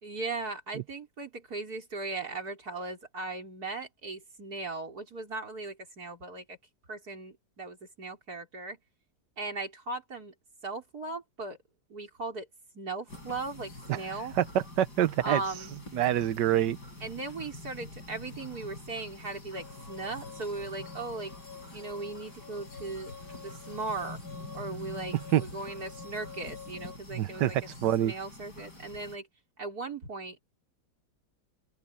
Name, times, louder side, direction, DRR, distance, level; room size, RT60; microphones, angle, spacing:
voice 1, 0.0-6.6 6.9-8.8 9.4-10.3 10.6-11.6 11.9-12.5 12.7-14.4 15.2-15.7 17.0-21.4 21.7-24.2 24.5-27.7 28.0-29.3 29.6-30.4, right 3 dB, 55° right, 5.3 m, -38 dB
sound 1, 13.1-29.2, left 2 dB, 65° left, 7.5 m, -46 dB
voice 2, 14.4-15.6 15.9-16.8 25.3-25.4 27.1-28.1, right 11 dB, 75° right, 1.4 m, -26 dB
sound 2, 19.5-27.0, left 6 dB, 30° left, 5.7 m, -49 dB
open air
omnidirectional pair, 1.9 m